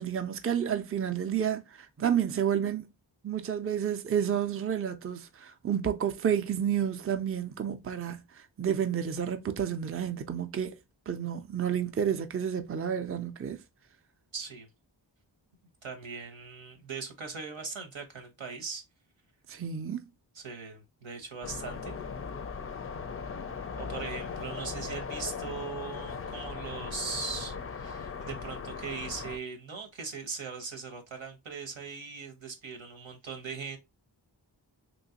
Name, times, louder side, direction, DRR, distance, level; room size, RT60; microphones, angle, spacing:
voice 1, 0.0-2.9 3.2-10.7 11.1-13.6 19.5-20.0, right 8 dB, 30° right, 0.4 m, -30 dB
voice 2, 14.3-14.7 15.8-18.8 20.3-22.0 23.8-33.8, right 5 dB, 90° right, 1.0 m, -40 dB
sound 1, 21.4-29.4, left 5 dB, 30° left, 0.4 m, -38 dB
3.0 x 3.0 x 2.8 m
wide cardioid pair, 60°, 46 cm